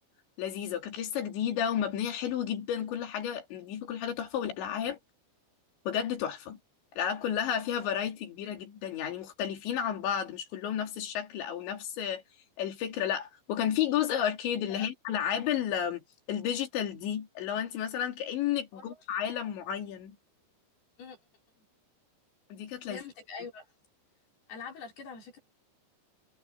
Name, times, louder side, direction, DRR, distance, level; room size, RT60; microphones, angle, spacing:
voice 1, 0.4-5.0 5.9-6.6 7.0-12.2 12.6-20.2 22.5-23.0, left 9 dB, 70° left, 5.0 m, -32 dB
voice 2, 22.9-23.7 24.5-25.4, left 5 dB, 55° left, 6.4 m, -44 dB
omnidirectional pair, 5.4 m